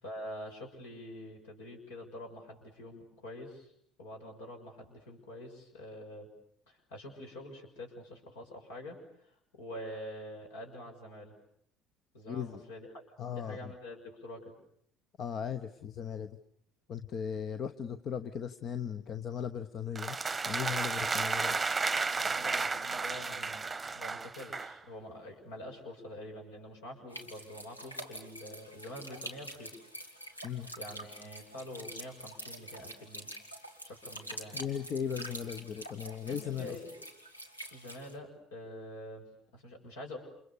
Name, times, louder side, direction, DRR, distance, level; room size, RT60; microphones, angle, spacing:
voice 1, 0.0-3.7 4.0-6.3 6.7-11.4 12.1-12.9 13.3-14.5 22.1-29.8 30.3-30.4 30.8-33.3 33.8-34.6 36.2-37.1 37.7-40.2, left 1 dB, 65° left, 2 dB, 6.7 m, -46 dB
voice 2, 12.3-12.6 13.2-13.7 15.2-16.4 16.9-20.2 20.5-21.6 30.4-30.7 34.5-36.8, left 8 dB, 40° left, 11 dB, 1.0 m, -37 dB
sound 1, 19.9-24.8, right 4 dB, 20° right, 1.1 m, -33 dB
sound 2, 27.1-38.1, equal, 85° left, 2.3 m, -46 dB
29.5 x 28.0 x 6.9 m, 0.67 s
figure-of-eight pair, 60°, 0 cm